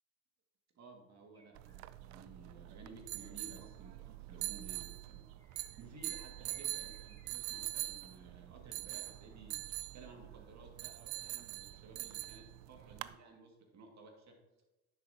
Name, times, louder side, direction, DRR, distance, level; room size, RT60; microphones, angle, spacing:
voice 1, 0.7-5.3 5.8-9.6 9.9-14.4, right 3 dB, 40° right, 1 dB, 2.1 m, -56 dB
sound 1, 1.3-2.2 3.3-3.5 4.8-7.5 7.8-8.1, left 4 dB, 5° left, 1.7 m, -67 dB
sound 2, 1.6-13.1, right 19 dB, 70° right, 0.5 m, -44 dB
10.5 x 7.3 x 2.8 m, 1.1 s
hypercardioid pair, 75°, 40 cm